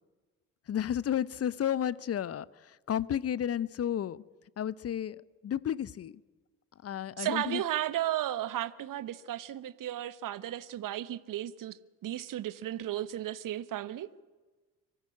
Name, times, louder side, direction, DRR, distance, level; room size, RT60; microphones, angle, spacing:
voice 1, 0.7-4.2 4.6-5.2 5.4-6.2 6.8-7.6, left 10 dB, 35° left, 0.7 m, -32 dB
voice 2, 7.2-11.8 12.0-14.1, right 13 dB, 45° right, 1.1 m, -34 dB
24.0 x 15.0 x 9.8 m
figure-of-eight pair, 50°, 44 cm